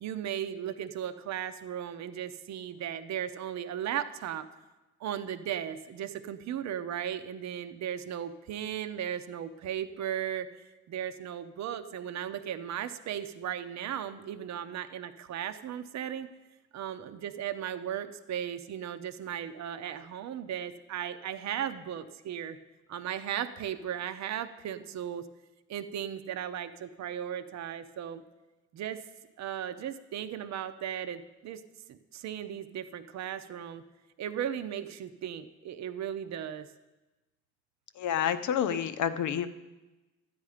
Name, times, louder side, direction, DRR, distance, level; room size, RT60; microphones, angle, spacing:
voice 1, 0.0-4.5 5.0-10.5 10.9-16.3 16.7-22.6 22.9-25.3 25.7-28.2 28.7-29.0 29.4-31.6 31.9-33.8 34.2-36.7, right 9 dB, 65° right, 10 dB, 0.7 m, -36 dB
voice 2, 38.0-39.5, left 9 dB, 75° left, 11 dB, 0.8 m, -29 dB
12.5 x 9.6 x 4.9 m, 1.1 s
cardioid pair, 90°, 30 cm